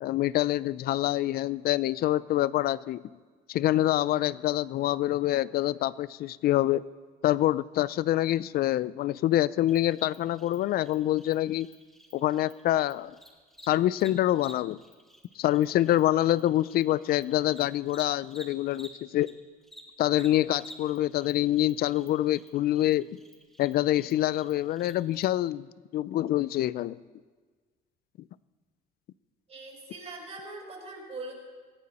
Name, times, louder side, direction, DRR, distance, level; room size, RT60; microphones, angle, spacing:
voice 1, 0.0-3.0 3.5-6.8 7.2-11.7 12.1-13.1 13.6-14.8 15.4-19.3 20.0-23.1 23.6-25.7 25.9-27.0, left 14 dB, 65° left, 19 dB, 0.5 m, -26 dB
Cricket, 9.7-19.3 19.6-25.2, equal, ahead, 3.3 m, -52 dB
voice 2, 29.5-31.3, right 2 dB, 40° right, 0 dB, 5.2 m, -41 dB
20.5 x 15.0 x 4.3 m, 1.4 s
cardioid pair, 110°, 17 cm